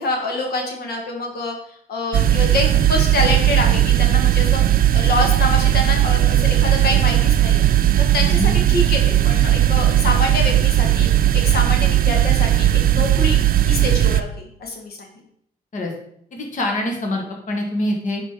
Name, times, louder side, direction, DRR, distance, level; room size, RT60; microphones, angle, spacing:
voice 1, 0.0-1.6 1.9-7.6 8.1-13.4 13.6-15.1, left 2 dB, 70° left, 1 dB, 1.8 m, -26 dB
sound 1, 2.1-14.2, right 12 dB, 60° right, 0.5 m, -17 dB
voice 2, 8.2-8.5 15.7-15.9 16.3-18.2, left 1 dB, 50° left, 1 dB, 1.6 m, -25 dB
9.3 x 5.1 x 3.8 m, 0.69 s
cardioid pair, 115°, 17 cm